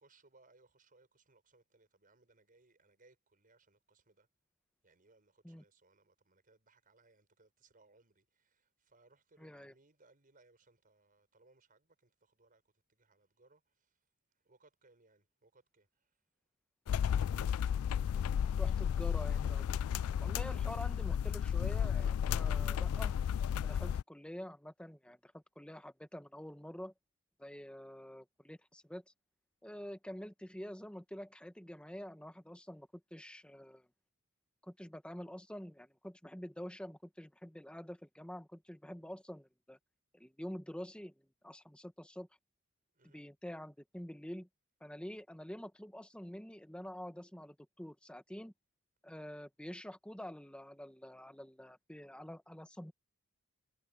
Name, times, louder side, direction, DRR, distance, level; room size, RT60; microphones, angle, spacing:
voice 1, 0.0-4.3 4.8-16.2 42.9-43.2, right 3 dB, 40° right, 5.7 m, -68 dB
voice 2, 9.4-9.7 18.6-19.8 20.2-23.1 23.5-26.9 27.4-29.0 29.6-33.9 34.6-39.8 40.1-42.3 43.1-44.5 44.8-48.5 49.0-52.9, equal, 5° left, 1.2 m, -47 dB
sound 1, 16.9-24.0, left 8 dB, 70° left, 0.3 m, -33 dB
head